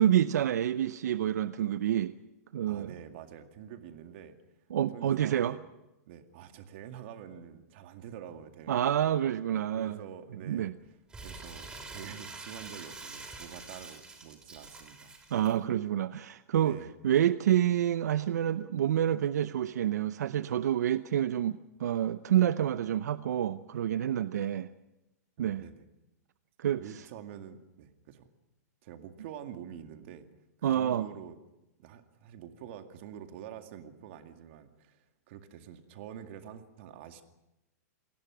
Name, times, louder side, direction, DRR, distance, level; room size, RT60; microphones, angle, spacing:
voice 1, 0.0-2.1 2.5-2.9 4.7-5.6 8.7-10.0 10.5-10.7 15.3-16.8 17.0-24.7 25.4-25.6 26.6-26.8 30.6-31.1, right 11 dB, 75° right, 0.7 m, -28 dB
voice 2, 2.6-4.4 4.9-5.6 6.1-9.0 9.7-15.2 16.6-16.9 25.4-25.9 26.7-28.3 28.8-30.3 30.6-31.4 31.8-37.2, right 9 dB, 45° right, 2.1 m, -47 dB
Crumpling crinkling, 11.1-15.5, right 3 dB, 10° right, 3.0 m, -46 dB
28.5 x 19.5 x 6.2 m
hypercardioid pair, 165°, 9 cm